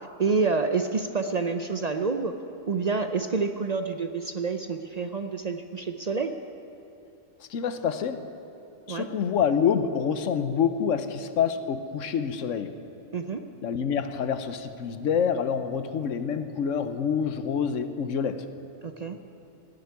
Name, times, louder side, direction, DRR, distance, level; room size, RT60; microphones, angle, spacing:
voice 1, 0.2-2.3 2.7-6.3 8.9-9.1 13.1-13.4 18.8-19.2, right 4 dB, 45° right, 7 dB, 0.5 m, -28 dB
voice 2, 7.5-8.2 8.9-12.7 13.6-18.4, left 7 dB, 85° left, 10 dB, 1.2 m, -27 dB
18.0 x 8.0 x 9.5 m, 2.9 s
omnidirectional pair, 1.3 m